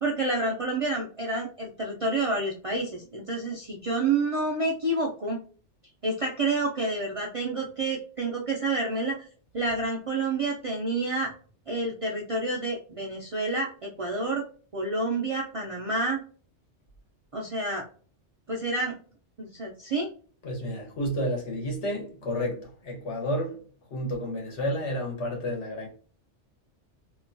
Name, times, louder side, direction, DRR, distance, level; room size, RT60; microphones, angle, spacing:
voice 1, 0.0-5.4 6.0-9.2 9.5-11.3 11.7-14.4 14.7-16.2 17.3-17.8 18.5-19.0 19.4-20.1, right 2 dB, 50° right, 0.4 m, -29 dB
voice 2, 20.4-23.6 23.9-25.9, equal, 75° left, 1.4 m, -31 dB
2.9 x 2.2 x 2.5 m
omnidirectional pair, 1.2 m